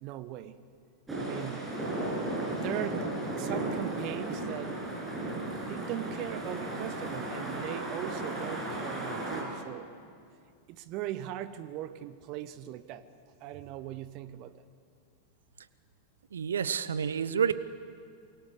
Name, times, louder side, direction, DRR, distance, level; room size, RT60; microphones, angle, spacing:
voice 1, 0.0-0.5 1.2-1.8 2.6-4.8 5.6-9.9 10.7-13.1 13.4-14.6, right 12 dB, 40° right, 14 dB, 1.0 m, -39 dB
sound 1, 1.1-9.4, right 2 dB, 10° right, 7.5 m, -35 dB
voice 2, 16.3-17.5, right 7 dB, 65° right, 16 dB, 1.1 m, -29 dB
28.0 x 23.0 x 8.2 m, 2.3 s
figure-of-eight pair, 90°, 0 cm